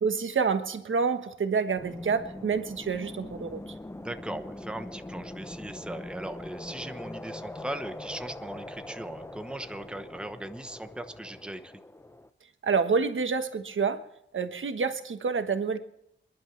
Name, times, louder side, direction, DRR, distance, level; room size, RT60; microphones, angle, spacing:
voice 1, 0.0-3.6 12.6-14.0 14.3-15.8, right 5 dB, 80° right, 8 dB, 1.3 m, -28 dB
sound 1, 1.8-12.3, left 1 dB, 15° left, 0.7 m, -42 dB
voice 2, 4.0-11.7, right 1 dB, 5° right, 8 dB, 1.0 m, -39 dB
28.0 x 11.0 x 3.3 m, 0.76 s
wide cardioid pair, 100°, 20 cm